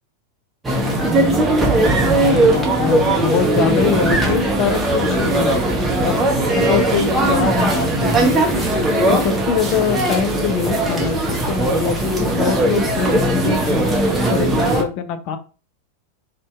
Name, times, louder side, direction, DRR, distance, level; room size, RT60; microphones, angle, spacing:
sound 1, 0.6-14.8, right 1 dB, 15° right, 0.6 m, -18 dB
voice 1, 1.6-6.2 6.5-8.7 9.1-13.9 14.3-15.4, left 7 dB, 40° left, 9 dB, 0.4 m, -23 dB
2.6 x 2.1 x 3.4 m, 0.36 s
figure-of-eight pair, 90°, 0 cm